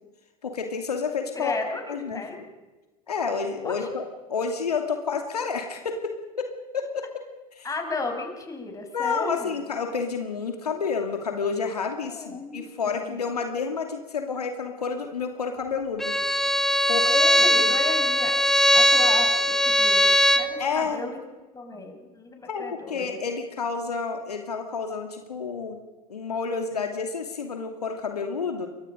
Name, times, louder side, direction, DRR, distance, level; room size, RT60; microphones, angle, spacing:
voice 1, 0.4-1.5 1.9-2.4 3.1-7.0 7.5-7.7 8.9-16.2 16.9-17.1 17.4-17.7 20.6-21.0 22.5-25.8 26.1-28.7, left 5 dB, 80° left, 4 dB, 2.6 m, -30 dB
voice 2, 1.3-2.4 3.6-4.0 7.6-9.6 12.1-13.2 17.0-18.4 18.7-20.1 20.4-21.2 21.5-23.1, left 3 dB, 15° left, 4 dB, 5.8 m, -34 dB
Bowed string instrument, 16.0-20.5, equal, ahead, 1.8 m, -20 dB
29.0 x 24.0 x 5.2 m, 1.2 s
figure-of-eight pair, 80°, 20 cm